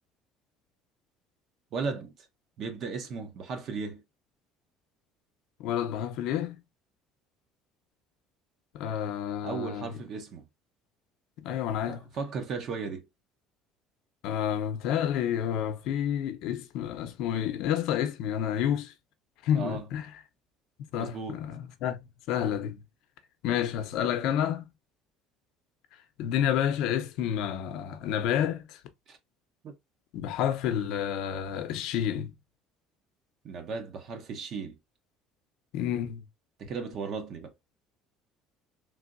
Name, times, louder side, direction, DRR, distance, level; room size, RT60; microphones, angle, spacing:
voice 1, 1.7-2.2 2.6-4.0 9.4-10.5 11.9-13.1 19.5-19.8 20.9-21.4 29.1-29.2 29.6-29.7 33.4-34.8 36.6-37.5, right 5 dB, 45° right, 0.7 m, -36 dB
voice 2, 5.6-6.6 8.7-10.0 11.4-12.1 14.2-18.9 19.4-20.1 20.9-22.0 22.3-22.8 23.4-24.6 26.2-28.8 30.1-32.3 35.7-36.2, left 9 dB, 70° left, 0.6 m, -29 dB
3.3 x 2.7 x 2.5 m
cardioid pair, 135°, 0 cm